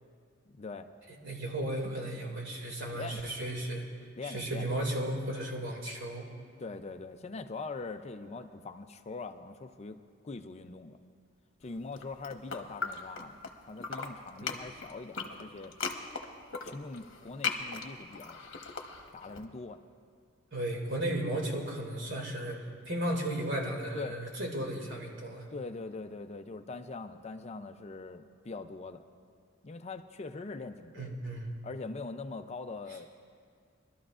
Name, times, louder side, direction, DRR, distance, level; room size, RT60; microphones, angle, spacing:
voice 1, 0.5-0.9 1.3-1.4 2.9-3.2 4.2-4.7 6.6-11.0 11.6-13.4 13.6-15.7 16.6-18.5 19.1-19.8 23.9-24.2 25.5-29.0 29.6-31.2 31.6-33.1, left 3 dB, 35° left, 8 dB, 0.5 m, -42 dB
voice 2, 1.2-3.8 4.2-6.3 20.5-22.6 22.9-25.5 30.9-31.5, right 1 dB, 70° right, 0 dB, 2.3 m, -34 dB
sound 1, 11.9-13.5 13.8-19.4, left 5 dB, 70° left, 1.0 m, -38 dB
23.5 x 12.5 x 2.4 m, 2.1 s
head